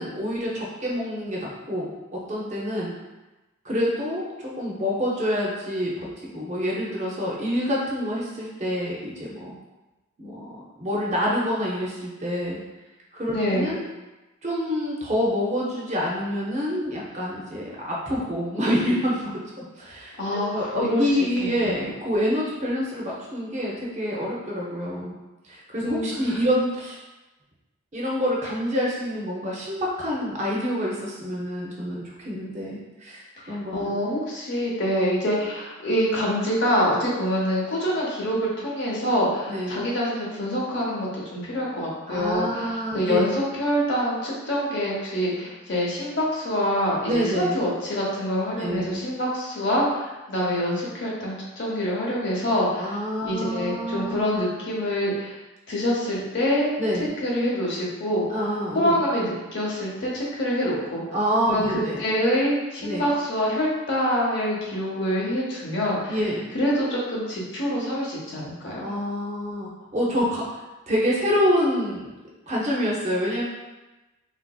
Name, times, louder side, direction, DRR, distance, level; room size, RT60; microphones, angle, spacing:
voice 1, 0.0-2.9 3.6-6.1 6.3-9.5 10.2-12.6 13.1-13.8 14.4-25.1 25.4-27.0 27.9-34.0 39.5-39.8 42.1-43.3 47.0-47.6 48.6-49.0 52.8-54.4 56.8-57.1 58.3-59.0 61.1-62.0 62.8-63.0 66.1-66.5 68.8-70.4 70.9-72.0 72.5-73.4, equal, 30° right, -4 dB, 0.6 m, -27 dB
voice 2, 13.3-13.7 20.2-21.0 21.4-21.9 25.8-26.1 33.4-53.0 53.2-55.4 55.7-56.7 57.2-58.3 58.7-61.0 61.5-61.6 62.0-66.2 66.5-68.9, equal, 50° left, -4 dB, 0.8 m, -25 dB
3.7 x 2.5 x 2.3 m, 1.1 s
head